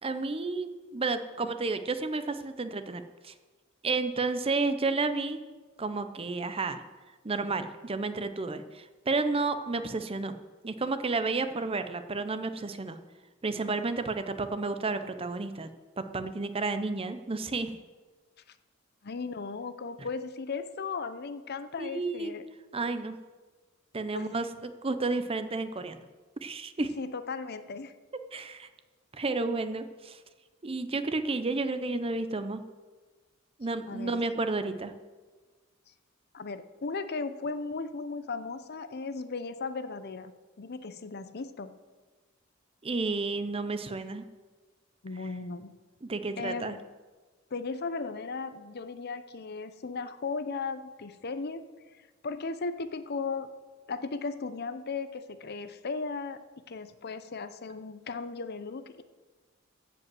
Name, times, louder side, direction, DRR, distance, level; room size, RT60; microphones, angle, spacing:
voice 1, 0.0-3.3 3.8-5.4 5.8-6.8 7.2-10.3 10.6-13.0 13.4-15.7 16.0-17.8 21.8-22.3 22.7-23.2 23.9-26.0 26.4-26.9 28.3-28.7 29.1-30.2 30.6-32.6 33.6-34.9 42.8-44.2 46.0-46.8, right 3 dB, 30° right, 10 dB, 0.6 m, -31 dB
voice 2, 19.0-22.4 24.1-24.3 26.8-27.9 33.9-34.2 36.3-40.3 40.6-41.7 45.0-45.7 46.4-46.8 47.5-51.6 51.9-53.5 53.9-56.4 56.7-59.0, left 4 dB, 50° left, 12 dB, 0.7 m, -36 dB
15.0 x 5.3 x 7.7 m, 1.3 s
head